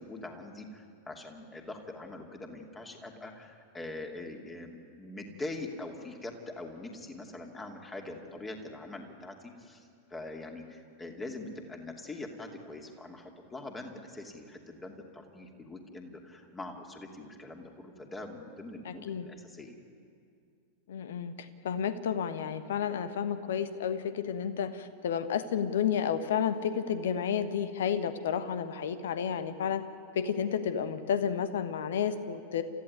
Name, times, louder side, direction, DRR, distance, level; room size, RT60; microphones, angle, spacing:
voice 1, 0.0-19.8, left 2 dB, 15° left, 3 dB, 2.7 m, -43 dB
voice 2, 18.8-19.3 20.9-29.8 30.1-32.6, left 8 dB, 60° left, 11 dB, 1.3 m, -31 dB
29.5 x 14.5 x 9.6 m, 2.4 s
figure-of-eight pair, 90°, 0 cm